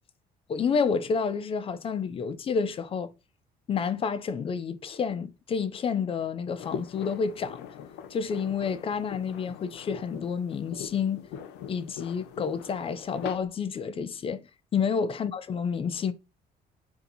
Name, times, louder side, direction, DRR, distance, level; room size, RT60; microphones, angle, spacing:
voice 1, 0.5-3.1 3.7-7.6 8.1-11.2 11.7-14.5 14.7-16.1, left 6 dB, 35° left, 0.4 m, -29 dB
sound 1, 6.5-13.4, left 8 dB, 85° left, 0.5 m, -42 dB
2.7 x 2.6 x 3.9 m
cardioid pair, 110°, 17 cm